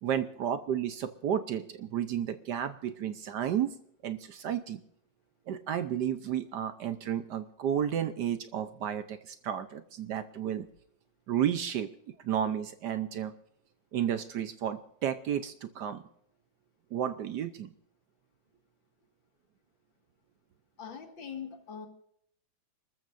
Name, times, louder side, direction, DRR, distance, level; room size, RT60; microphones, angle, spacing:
voice 1, 0.0-3.8 4.0-4.8 5.5-10.7 11.3-11.9 12.2-13.3 13.9-16.0 16.9-17.7, right 9 dB, 65° right, 11 dB, 1.2 m, -32 dB
voice 2, 20.8-21.9, left 7 dB, 70° left, 4 dB, 2.7 m, -42 dB
29.5 x 14.0 x 2.6 m, 0.68 s
omnidirectional pair, 2.2 m